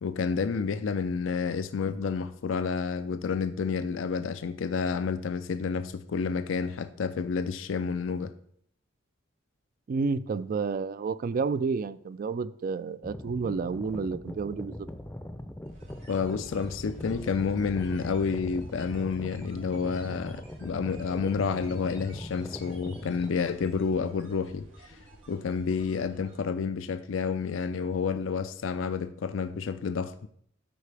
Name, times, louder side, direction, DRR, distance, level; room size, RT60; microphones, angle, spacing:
voice 1, 0.0-8.3 16.1-24.7 25.3-30.3, left 5 dB, 85° left, 0.4 m, -30 dB
voice 2, 9.9-14.9, right 4 dB, 45° right, 0.3 m, -30 dB
sound 1, 13.0-23.4, left 1 dB, 10° left, 0.5 m, -41 dB
sound 2, 15.7-26.5, right 1 dB, 75° right, 3.4 m, -53 dB
12.5 x 4.8 x 3.4 m
head